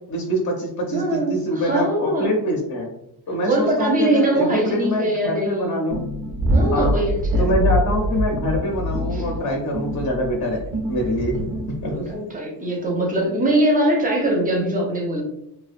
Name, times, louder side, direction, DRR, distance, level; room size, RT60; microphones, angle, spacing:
voice 1, 0.1-2.9 3.3-6.0 6.7-7.0 7.4-11.4 11.8-11.9, equal, 45° left, 0 dB, 0.5 m, -24 dB
voice 2, 0.9-2.3 3.4-5.8 6.5-7.6 9.1-9.2 11.3-11.5 11.9-15.2, right 1 dB, 20° right, 0 dB, 0.5 m, -22 dB
sound 1, 5.9-12.1, equal, 85° right, 0.7 m, -24 dB
2.4 x 2.2 x 2.4 m, 0.77 s
wide cardioid pair, 160°, 42 cm